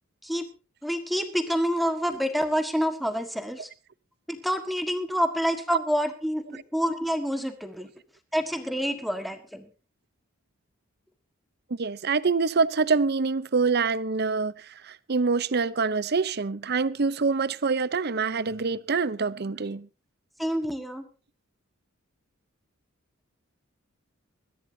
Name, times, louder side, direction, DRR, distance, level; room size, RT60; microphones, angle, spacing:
voice 1, 0.8-3.7 4.3-7.9 8.3-9.7 20.4-21.0, equal, ahead, 1.6 m, -27 dB
voice 2, 11.7-19.9, right 4 dB, 50° right, 0.7 m, -26 dB
22.0 x 14.5 x 2.8 m
head